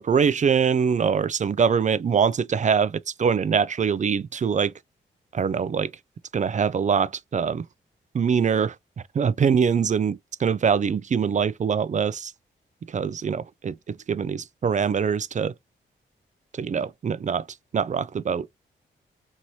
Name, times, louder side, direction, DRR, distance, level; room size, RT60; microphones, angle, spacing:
voice 1, 0.0-4.7 5.3-5.9 6.3-7.6 8.1-8.7 9.1-12.3 12.9-15.5 16.6-17.5 17.7-18.5, right 6 dB, 35° right, 0.4 m, -23 dB
3.0 x 2.6 x 3.0 m
supercardioid pair, 45°, 21 cm